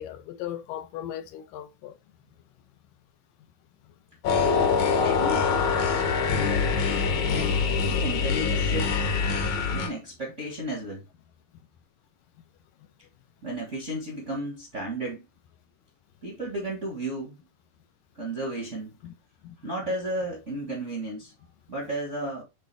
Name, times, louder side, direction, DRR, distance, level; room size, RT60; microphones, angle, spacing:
voice 1, 0.0-2.0 19.0-19.1 19.4-19.6, left 11 dB, 80° left, 2.4 m, -37 dB
sound 1, 4.2-9.9, left 5 dB, 65° left, 2.3 m, -24 dB
voice 2, 5.0-5.5 7.3-8.9 9.7-11.0 13.4-15.2 16.2-17.4 18.1-18.9 19.6-21.3 21.7-22.4, right 1 dB, 35° right, 1.1 m, -33 dB
8.7 x 3.6 x 3.4 m
omnidirectional pair, 3.9 m